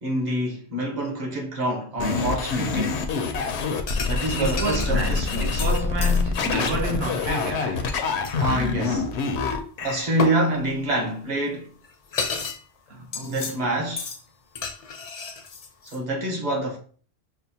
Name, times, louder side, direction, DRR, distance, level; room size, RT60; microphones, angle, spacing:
voice 1, 0.0-3.1 4.0-5.6 8.4-9.1 9.8-11.7 13.2-14.1 15.8-16.8, right 1 dB, 45° right, 1.0 m, -26 dB
sound 1, 2.0-10.1, left 4 dB, 85° left, 0.9 m, -26 dB
sound 2, 3.9-4.2 4.5-6.2 8.2-8.5 10.2-10.4 11.5-11.6 11.8-12.6 12.9-13.6 14.0-14.2 14.6-16.0, left 5 dB, 50° left, 0.4 m, -32 dB
voice 2, 4.3-8.0 12.9-13.6, right 2 dB, 70° right, 1.2 m, -30 dB
6.0 x 2.2 x 2.7 m
omnidirectional pair, 1.1 m